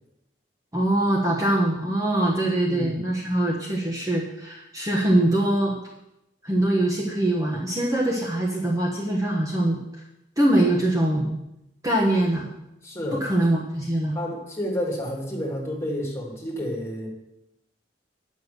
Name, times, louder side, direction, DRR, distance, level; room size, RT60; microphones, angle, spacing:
voice 1, 0.7-5.8 6.4-9.8 10.4-11.4 11.8-12.5 13.1-14.2, right 1 dB, 20° right, -3 dB, 1.2 m, -23 dB
voice 2, 2.7-3.1 12.8-13.3 14.1-17.1, equal, 15° left, -2 dB, 2.5 m, -30 dB
9.2 x 6.4 x 6.7 m, 0.87 s
head